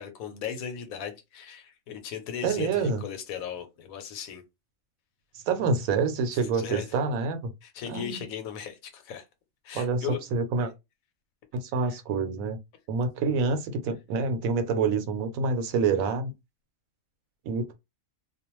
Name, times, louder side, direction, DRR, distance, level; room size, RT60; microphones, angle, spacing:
voice 1, 0.0-4.4 6.5-6.9 7.6-9.3 9.6-10.2 11.9-12.0, left 8 dB, 90° left, 1.1 m, -37 dB
voice 2, 2.4-3.0 5.3-7.5 7.9-8.2 9.7-10.7 11.5-12.6 12.9-16.3 17.4-17.7, right 4 dB, 85° right, 1.1 m, -27 dB
2.4 x 2.2 x 3.0 m
omnidirectional pair, 1.4 m